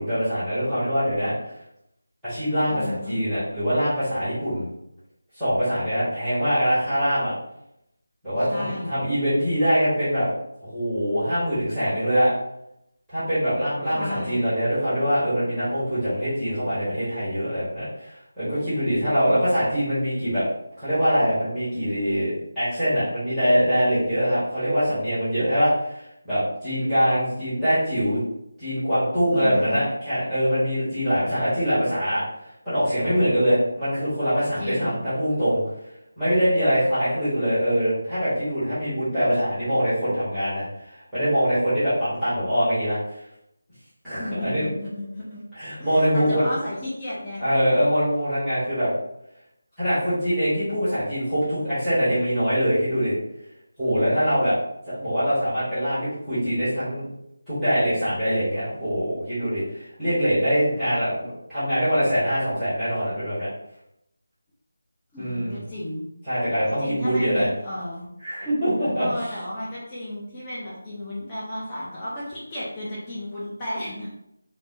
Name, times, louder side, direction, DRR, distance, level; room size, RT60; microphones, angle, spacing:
voice 1, 0.0-1.3 2.2-4.7 5.4-7.3 8.2-10.3 10.6-12.3 13.1-20.4 20.8-28.2 28.6-32.2 32.6-35.6 36.2-40.6 41.1-43.0 44.0-44.6 45.5-46.5 47.4-48.9 49.8-53.1 53.8-54.5 54.9-57.1 57.5-61.2 61.5-63.5 65.2-65.6 66.3-67.5 68.2-69.1, equal, ahead, -16 dB, 1.2 m, -23 dB
voice 2, 2.7-3.2 8.5-8.9 13.9-14.4 29.3-29.9 34.6-35.0 44.2-45.4 45.8-47.4 65.1-66.0 66.8-68.1 69.0-74.1, left 1 dB, 15° left, -9 dB, 0.5 m, -33 dB
3.3 x 2.0 x 2.5 m, 0.81 s
figure-of-eight pair, 160°, 0 cm